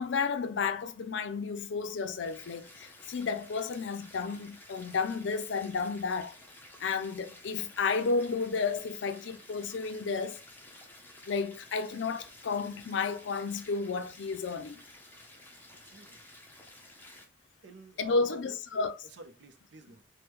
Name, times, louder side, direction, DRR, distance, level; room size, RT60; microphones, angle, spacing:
voice 1, 0.0-6.3 6.8-10.4 11.3-14.8 18.0-18.9, left 4 dB, 75° left, 0.4 m, -32 dB
sound 1, 2.3-17.2, left 1 dB, 10° left, 0.5 m, -53 dB
voice 2, 15.7-16.2 17.6-18.6 19.1-20.0, right 3 dB, 65° right, 0.5 m, -51 dB
3.5 x 2.1 x 2.9 m
head